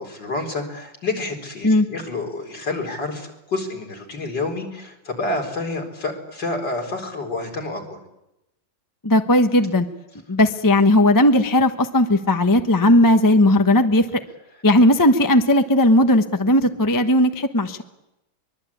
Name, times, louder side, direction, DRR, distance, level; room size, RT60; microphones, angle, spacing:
voice 1, 0.0-8.0, left 2 dB, 60° left, 2 dB, 4.9 m, -28 dB
voice 2, 9.0-9.8 10.3-14.2 14.6-17.8, left 1 dB, 15° left, 7 dB, 0.8 m, -16 dB
23.5 x 23.0 x 8.6 m, 0.91 s
omnidirectional pair, 2.1 m